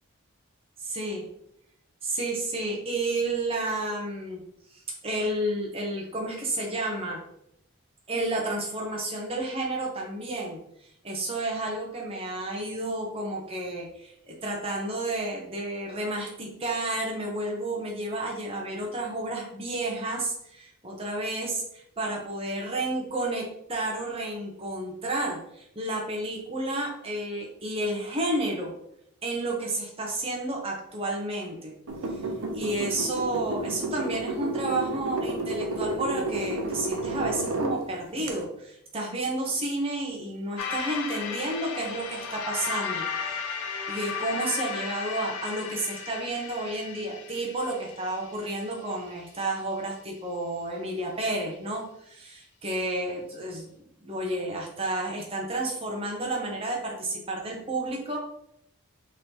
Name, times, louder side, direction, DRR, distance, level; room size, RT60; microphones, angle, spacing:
voice 1, 0.8-1.2 2.0-4.4 4.7-7.2 8.1-10.6 11.0-28.7 29.2-31.7 32.5-43.4 43.9-53.7 54.0-58.2, right 2 dB, 25° right, -1 dB, 0.8 m, -31 dB
sound 1, 31.9-37.8 38.3-38.4, right 2 dB, 85° right, 0.7 m, -31 dB
sound 2, 40.6-49.0, left 6 dB, 90° left, 0.5 m, -35 dB
3.8 x 3.2 x 2.9 m, 0.74 s
head